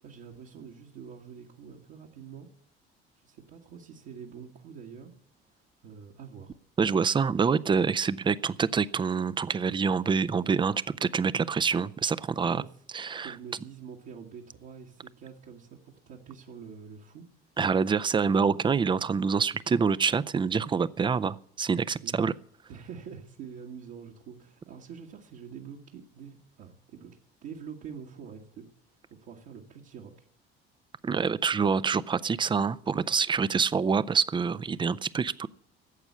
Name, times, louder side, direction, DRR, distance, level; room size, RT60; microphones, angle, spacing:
voice 1, 0.0-2.5 3.2-5.1 5.5-6.5 12.4-12.7 13.2-17.2 21.9-22.1 22.7-27.1 27.4-30.3, right 7 dB, 55° right, -2 dB, 1.6 m, -46 dB
voice 2, 6.8-12.6 12.9-13.3 17.6-22.3 31.0-35.5, right 5 dB, 15° right, 18 dB, 0.5 m, -26 dB
14.0 x 8.1 x 8.3 m, 0.64 s
figure-of-eight pair, 55°, 30 cm